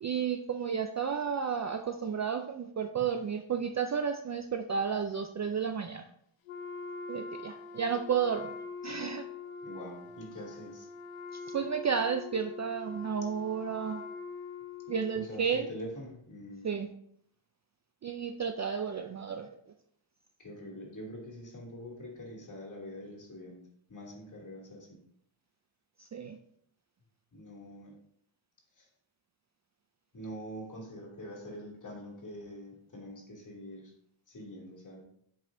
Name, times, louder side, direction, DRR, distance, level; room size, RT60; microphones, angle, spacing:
voice 1, 0.0-6.0 7.1-8.5 8.8-9.3 11.5-14.0 14.9-15.7 16.6-16.9 18.0-19.5 26.0-26.4, right 7 dB, 40° right, 7 dB, 0.4 m, -32 dB
Wind instrument woodwind instrument, 6.5-15.3, left 4 dB, 90° left, 0.8 m, -44 dB
voice 2, 9.6-10.9 15.1-16.7 20.4-23.6 23.9-24.9 27.3-27.9 28.8-28.9 30.1-33.9 34.3-35.1, equal, 35° left, -3 dB, 2.6 m, -44 dB
7.5 x 5.5 x 2.6 m, 0.70 s
wide cardioid pair, 110°, 49 cm